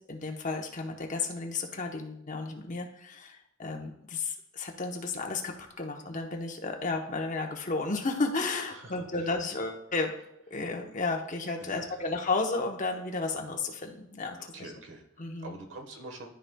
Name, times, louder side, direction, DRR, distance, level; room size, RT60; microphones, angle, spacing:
voice 1, 0.1-10.1 10.5-14.7 15.2-15.6, left 3 dB, 40° left, 3 dB, 0.9 m, -33 dB
voice 2, 8.7-9.5 11.6-12.1 14.4-16.3, right 2 dB, 70° right, 4 dB, 1.2 m, -46 dB
12.5 x 4.9 x 2.2 m, 0.79 s
head